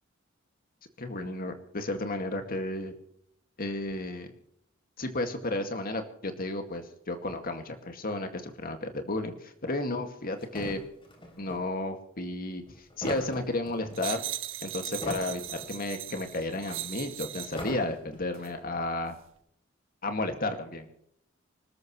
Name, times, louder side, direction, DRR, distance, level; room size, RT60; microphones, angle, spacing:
voice 1, 1.0-2.9 3.6-4.3 5.0-10.8 11.4-12.6 13.0-14.2 14.6-19.2 20.0-20.9, left 2 dB, 45° left, 6 dB, 2.2 m, -33 dB
sound 1, 10.4-11.6 12.7-14.0 14.8-15.8 16.1-16.2 17.4-18.4, left 1 dB, 25° left, 3.5 m, -40 dB
sound 2, 13.9-17.7 18.3-18.5, right 12 dB, 70° right, 1.7 m, -38 dB
26.5 x 13.5 x 3.2 m, 0.71 s
head